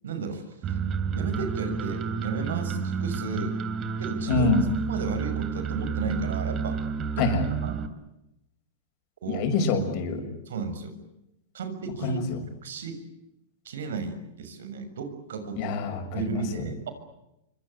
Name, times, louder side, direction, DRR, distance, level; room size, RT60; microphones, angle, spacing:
voice 1, 0.0-0.8 1.1-3.6 4.0-4.6 4.9-6.8 7.2-7.3 7.6-7.8 9.2-9.5 10.4-11.0 11.5-12.2 12.6-13.0 13.6-15.8 16.1-16.9, right 5 dB, 90° right, 11 dB, 6.7 m, -34 dB
sound 1, 0.6-7.9, right 6 dB, 30° right, 3.0 m, -30 dB
voice 2, 4.3-4.7 7.2-7.4 9.3-10.2 12.0-12.4 15.6-16.6, left 4 dB, 45° left, 6 dB, 6.5 m, -26 dB
27.0 x 24.5 x 8.3 m, 0.86 s
supercardioid pair, 140°, 0 cm